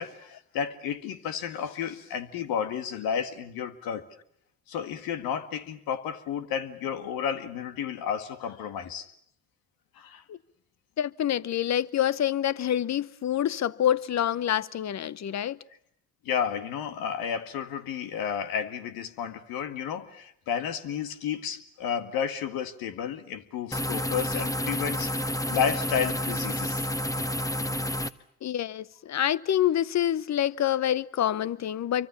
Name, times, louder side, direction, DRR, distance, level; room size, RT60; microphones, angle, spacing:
voice 1, 0.0-4.0 4.7-9.1 9.9-10.2 16.2-26.9, left 7 dB, 75° left, 1.9 m, -32 dB
voice 2, 11.0-15.6 28.4-32.1, left 11 dB, 50° left, 1.0 m, -27 dB
sound 1, 23.7-28.1, equal, 10° left, 1.2 m, -29 dB
27.5 x 24.5 x 7.1 m
hypercardioid pair, 55°, 35 cm